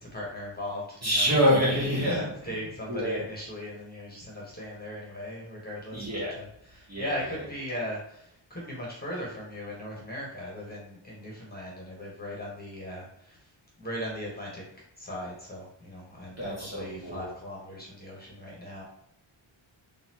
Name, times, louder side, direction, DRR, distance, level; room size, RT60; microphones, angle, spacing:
voice 1, 0.0-1.3 1.9-13.5 13.8-18.8, left 1 dB, 20° left, -4 dB, 1.3 m, -38 dB
voice 2, 1.0-2.3 2.9-3.2 5.9-6.3 6.9-7.2 16.4-17.2, equal, 30° right, -6 dB, 1.6 m, -26 dB
4.0 x 3.5 x 2.9 m, 0.74 s
wide cardioid pair, 120°, 48 cm